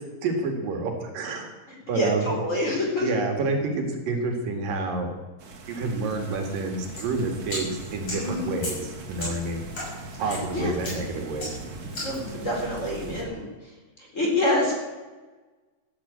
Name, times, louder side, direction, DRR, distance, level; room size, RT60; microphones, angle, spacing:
voice 1, 0.2-1.5 1.9-2.3 3.0-5.1 5.7-9.6 10.2-11.5, right 3 dB, 75° right, 4 dB, 3.8 m, -28 dB
voice 2, 1.9-3.1 8.1-8.5 10.2-10.7 12.0-13.7 14.0-14.7, left 1 dB, 20° left, -1 dB, 4.6 m, -27 dB
sound 1, 5.4-13.3, right 3 dB, 50° right, 3.5 m, -41 dB
sound 2, 7.0-12.3, left 1 dB, 35° left, 7.8 m, -37 dB
15.0 x 10.5 x 8.6 m, 1.2 s
omnidirectional pair, 4.0 m